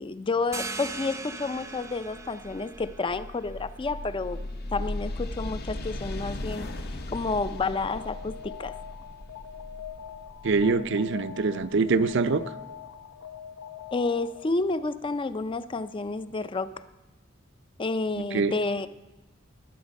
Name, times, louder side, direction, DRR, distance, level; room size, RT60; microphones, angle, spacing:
voice 1, 0.0-4.4 4.7-6.7 7.1-8.8 13.9-16.7 17.8-18.9, left 3 dB, 25° left, 13 dB, 0.4 m, -30 dB
sound 1, 0.5-5.9, right 3 dB, 15° right, 0.7 m, -41 dB
sound 2, 1.7-12.4, left 1 dB, 50° left, 0.8 m, -38 dB
Alarm, 7.6-14.6, left 9 dB, 90° left, 0.9 m, -43 dB
voice 2, 10.4-12.4 18.2-18.5, right 4 dB, 60° right, 13 dB, 0.6 m, -24 dB
19.5 x 7.2 x 5.3 m, 1.1 s
head